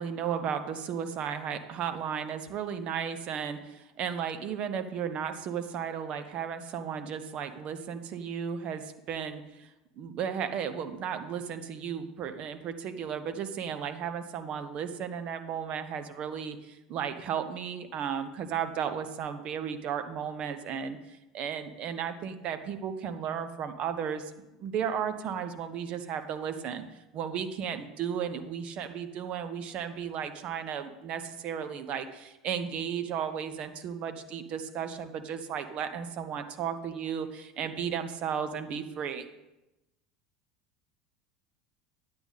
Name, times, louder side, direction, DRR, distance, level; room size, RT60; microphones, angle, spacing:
voice 1, 0.0-9.7 10.0-24.3 24.6-26.8 27.1-39.2, right 8 dB, 50° right, 9 dB, 1.2 m, -34 dB
11.0 x 9.2 x 4.1 m, 0.96 s
hypercardioid pair, 75°, 3 cm